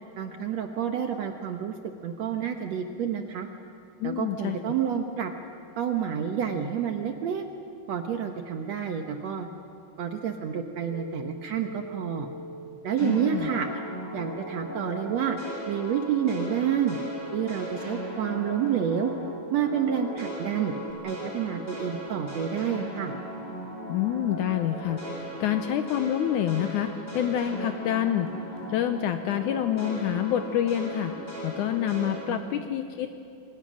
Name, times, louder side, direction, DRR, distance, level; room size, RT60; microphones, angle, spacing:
voice 1, 0.2-1.8 2.0-3.5 4.0-5.3 5.8-7.5 7.9-9.5 10.0-12.3 12.8-13.7 14.1-15.4 15.7-17.0 17.3-19.1 19.5-20.7 21.0-23.1 32.3-32.5, right 8 dB, 65° right, 5 dB, 1.9 m, -29 dB
voice 2, 4.0-4.6 13.0-13.5 23.9-28.3 28.7-31.1 31.4-33.2, left 10 dB, 75° left, 8 dB, 2.0 m, -27 dB
sound 1, 10.9-20.9, left 1 dB, 40° left, 3.2 m, -42 dB
sound 2, 13.0-19.3 19.6-28.9 29.2-32.2, equal, 10° left, 7.2 m, -38 dB
27.5 x 24.5 x 6.3 m, 2.5 s
omnidirectional pair, 4.0 m